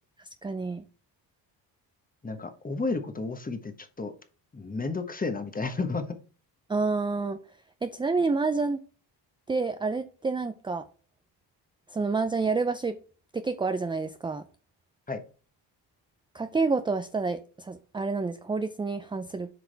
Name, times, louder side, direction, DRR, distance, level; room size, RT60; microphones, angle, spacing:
voice 1, 0.4-0.8 6.7-7.4 7.8-8.8 9.5-10.8 11.9-13.0 13.3-14.4 16.3-19.5, right 4 dB, 10° right, 10 dB, 0.4 m, -28 dB
voice 2, 2.2-4.1 4.5-6.1 15.1-15.2, left 3 dB, 20° left, 8 dB, 1.1 m, -32 dB
7.7 x 4.8 x 3.4 m, 0.38 s
cardioid pair, 95°, 44 cm